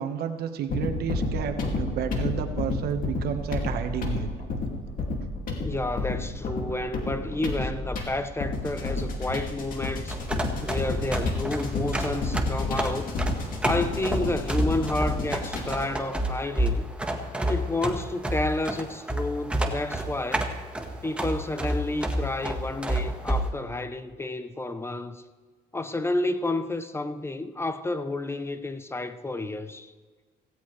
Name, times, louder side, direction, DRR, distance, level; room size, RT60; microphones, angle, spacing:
voice 1, 0.0-4.3, right 8 dB, 70° right, 1.4 m, -31 dB
sound 1, 0.7-16.0, left 2 dB, 55° left, 2.5 m, -31 dB
voice 2, 5.6-10.2 10.6-13.2 13.6-16.9 17.5-20.5 21.0-25.2 25.7-29.9, left 2 dB, 15° left, 0.7 m, -30 dB
sound 2, 10.1-23.5, right 1 dB, 5° right, 1.5 m, -30 dB
16.5 x 16.5 x 3.3 m
cardioid pair, 110°, 17 cm